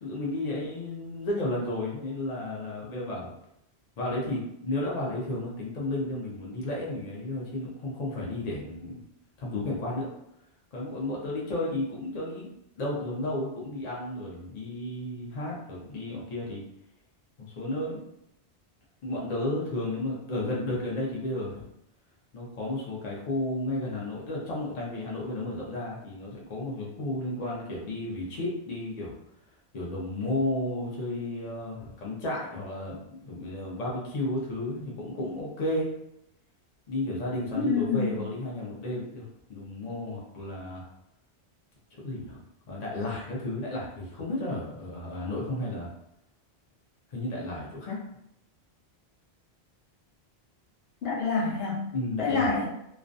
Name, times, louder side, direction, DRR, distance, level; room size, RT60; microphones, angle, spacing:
voice 1, 0.0-3.3 4.0-9.0 9.4-10.1 10.7-12.5 12.8-16.6 17.4-18.0 19.0-21.7 22.3-29.1 29.7-35.9 36.9-39.2 39.5-40.9 42.0-42.4 42.7-45.9 47.1-48.0 51.9-52.5, left 1 dB, 45° left, -4 dB, 0.6 m, -33 dB
voice 2, 37.6-38.2 51.0-51.8 52.2-52.7, left 4 dB, 70° left, -3 dB, 0.9 m, -26 dB
2.4 x 2.1 x 2.5 m, 0.79 s
omnidirectional pair, 1.1 m